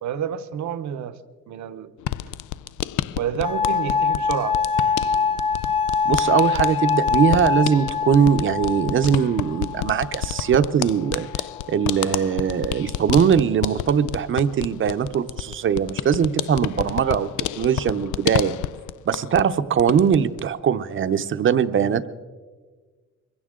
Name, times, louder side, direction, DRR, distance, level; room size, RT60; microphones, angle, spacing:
voice 1, 0.0-1.2 1.5-1.9 3.1-4.6, right 9 dB, 70° right, 11 dB, 0.9 m, -29 dB
sound 1, 2.0-19.5 19.8-20.5, left 14 dB, 85° left, 0.4 m, -30 dB
sound 2, 3.4-10.4 11.2-11.8, left 5 dB, 20° left, 0.8 m, -24 dB
voice 2, 6.0-17.3 17.5-18.6 19.1-22.1, right 7 dB, 45° right, 11 dB, 0.7 m, -21 dB
23.0 x 16.0 x 3.7 m, 1.4 s
cardioid pair, 145°, 29 cm